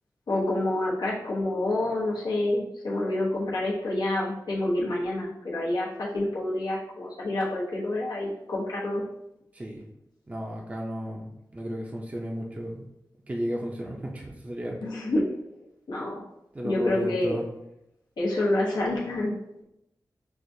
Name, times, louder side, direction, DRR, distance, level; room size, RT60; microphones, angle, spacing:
voice 1, 0.3-9.0 14.8-15.3 15.9-16.2 16.6-17.4 18.2-19.4, left 1 dB, 85° left, -6 dB, 1.0 m, -28 dB
voice 2, 9.5-9.8 10.3-12.8 13.3-14.8 16.5-17.4, equal, 20° right, -1 dB, 0.5 m, -34 dB
6.0 x 2.4 x 2.6 m, 0.83 s
wide cardioid pair, 125°, 7 cm